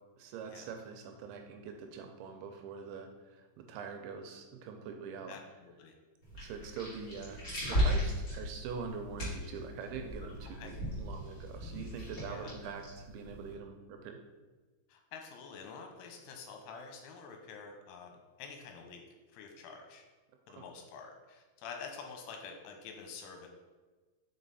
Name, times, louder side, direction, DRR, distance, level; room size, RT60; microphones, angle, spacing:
voice 1, 0.2-5.3 6.4-14.2 20.5-20.6, right 5 dB, 80° right, 5 dB, 2.8 m, -44 dB
voice 2, 5.3-5.9 10.6-10.7 12.3-12.5 14.9-18.1 18.4-19.0 19.3-20.0 20.5-23.5, left 5 dB, 80° left, 3 dB, 3.3 m, -48 dB
sound 1, 6.2-13.5, equal, 35° left, 1.5 m, -37 dB
6.0 x 5.5 x 4.1 m, 1.3 s
omnidirectional pair, 5.5 m